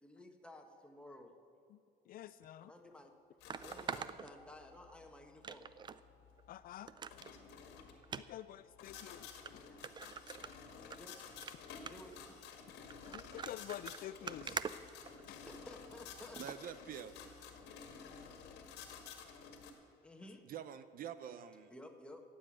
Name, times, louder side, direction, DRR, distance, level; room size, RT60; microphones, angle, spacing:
voice 1, 0.0-1.3 2.6-3.1 3.6-5.7 7.6-8.2 9.0-9.2 10.8-11.4 11.6-12.4 14.0-14.4 15.1-16.4 20.0-20.5 21.7-22.2, left 1 dB, 5° left, 3 dB, 1.6 m, -56 dB
voice 2, 2.1-2.7 6.5-6.9 8.1-9.6 13.1-14.6 15.3-15.4, left 12 dB, 60° left, 15 dB, 0.4 m, -48 dB
sound 1, 2.4-2.5 3.5-4.9 5.4-6.0 6.4-6.5 6.9-7.3 8.0-8.2 9.0-9.1 9.5-9.6 9.8-11.0 11.3-11.5 11.9-12.2 12.9-15.6 16.4-16.6 17.1-17.2, right 6 dB, 25° right, 0.4 m, -44 dB
sound 2, 3.4-19.7, left 6 dB, 90° left, 1.9 m, -53 dB
voice 3, 16.4-17.1 20.4-21.7, right 9 dB, 55° right, 12 dB, 0.7 m, -46 dB
14.0 x 8.0 x 8.8 m, 2.4 s
cardioid pair, 110°, 17 cm